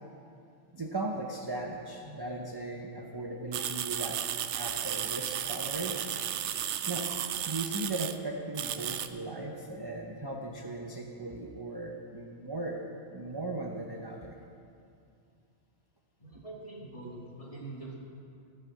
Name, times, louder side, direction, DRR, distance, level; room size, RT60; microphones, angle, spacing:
voice 1, 0.7-6.1 6.9-7.1 7.5-12.8 13.1-14.4, right 2 dB, 25° right, 0 dB, 0.7 m, -37 dB
sound 1, 3.5-8.2 8.5-9.1, right 10 dB, 75° right, 0.9 m, -34 dB
voice 2, 16.2-18.0, right 2 dB, 30° left, -5 dB, 2.5 m, -44 dB
16.0 x 5.7 x 7.5 m, 2.5 s
omnidirectional pair, 1.2 m